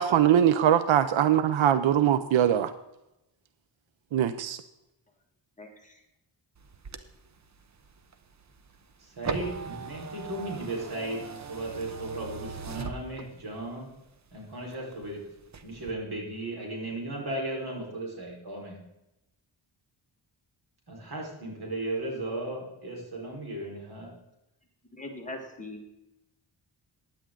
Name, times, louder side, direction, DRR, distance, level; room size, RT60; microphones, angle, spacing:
voice 1, 0.0-2.7 4.1-4.6, right 10 dB, 85° right, 12 dB, 0.7 m, -22 dB
voice 2, 5.6-6.0 24.9-25.8, left 1 dB, 15° left, 1 dB, 1.8 m, -41 dB
sound 1, 6.6-13.6 14.1-15.1 15.4-15.9, right 5 dB, 40° right, 0.8 m, -40 dB
voice 3, 9.2-13.9 14.3-15.3 15.6-18.8 20.9-24.1, right 2 dB, 55° right, -2 dB, 4.4 m, -36 dB
15.5 x 10.5 x 3.8 m, 0.91 s
wide cardioid pair, 150°, 45 cm